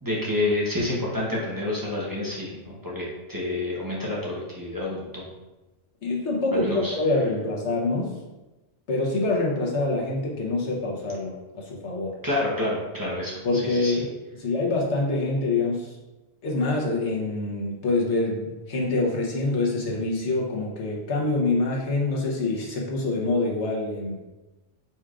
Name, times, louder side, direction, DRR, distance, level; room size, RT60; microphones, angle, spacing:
voice 1, 0.0-5.3 6.5-7.0 12.2-14.0, left 2 dB, 20° right, -6 dB, 1.0 m, -29 dB
voice 2, 6.0-8.2 8.9-12.2 13.4-14.1 14.4-15.9 16.4-24.2, left 2 dB, 90° left, -2 dB, 1.3 m, -25 dB
4.7 x 4.2 x 2.4 m, 1.1 s
omnidirectional pair, 1.1 m